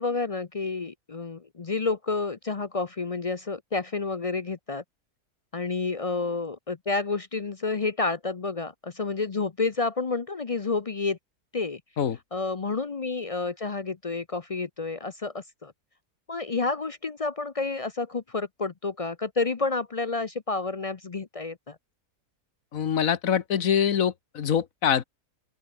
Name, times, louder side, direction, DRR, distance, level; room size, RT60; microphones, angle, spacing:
voice 1, 0.0-4.8 5.5-11.2 11.5-11.8 12.3-15.7 16.3-21.8, left 3 dB, 45° left, 0.4 m, -30 dB
voice 2, 22.7-25.0, left 8 dB, 60° left, 1.5 m, -24 dB
open air
omnidirectional pair, 1.7 m